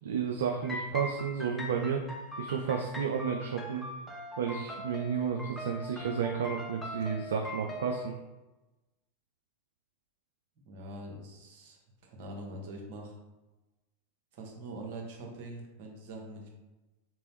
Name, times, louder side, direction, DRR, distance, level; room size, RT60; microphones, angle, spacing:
voice 1, 0.0-2.0 2.4-3.8 4.4-8.1, right 7 dB, 60° right, 2 dB, 0.3 m, -32 dB
sound 1, 0.6-8.0, left 1 dB, 5° left, 0.6 m, -41 dB
voice 2, 10.7-13.2 14.3-16.5, right 1 dB, 45° right, 0 dB, 1.0 m, -44 dB
3.8 x 3.0 x 3.1 m, 1.1 s
figure-of-eight pair, 90°, 0 cm